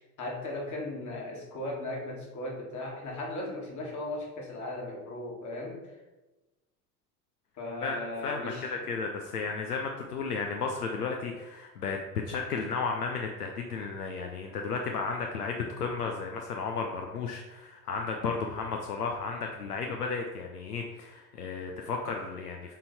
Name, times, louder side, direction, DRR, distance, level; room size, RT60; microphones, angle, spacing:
voice 1, 0.0-5.8 7.6-8.7, left 1 dB, 40° left, -1 dB, 2.1 m, -37 dB
voice 2, 8.2-12.0 12.3-22.7, left 4 dB, 80° left, 2 dB, 0.7 m, -33 dB
7.4 x 3.9 x 4.1 m, 1.1 s
figure-of-eight pair, 65°, 46 cm